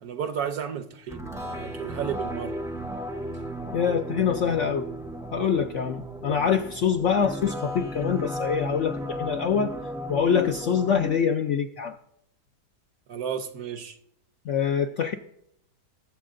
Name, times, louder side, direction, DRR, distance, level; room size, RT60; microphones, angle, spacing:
voice 1, 0.0-2.6 13.1-14.0, right 8 dB, 65° right, 1.3 m, -33 dB
sound 1, 1.1-11.1, equal, 5° right, 0.3 m, -35 dB
voice 2, 3.7-4.9 5.3-9.7 10.1-11.9 14.5-15.1, left 7 dB, 70° left, 0.7 m, -25 dB
19.0 x 7.4 x 2.5 m
omnidirectional pair, 1.8 m